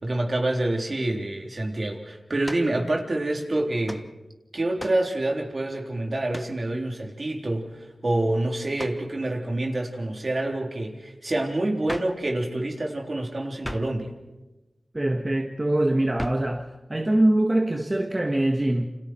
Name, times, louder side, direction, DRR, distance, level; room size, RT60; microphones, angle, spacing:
voice 1, 0.0-4.0 4.5-14.1, right 1 dB, 55° right, 3.7 m, -27 dB
sound 1, 2.4-2.8 3.9-4.1 4.8-5.1 6.3-6.6 8.8-9.1 11.9-12.2 13.6-14.0 16.2-16.5, equal, 10° left, 1.3 m, -36 dB
voice 2, 14.9-18.9, right 1 dB, 30° right, 1.7 m, -23 dB
29.0 x 27.0 x 4.6 m
cardioid pair, 40°, 0 cm